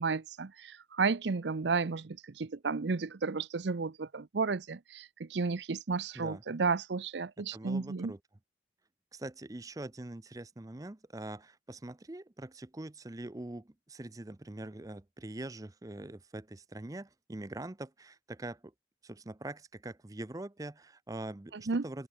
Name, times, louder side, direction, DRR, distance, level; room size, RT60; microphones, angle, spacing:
voice 1, 0.0-8.1 21.5-21.8, right 4 dB, 75° right, 0.6 m, -33 dB
voice 2, 7.5-8.2 9.1-18.7 19.0-22.1, right 2 dB, 20° right, 0.5 m, -43 dB
open air
head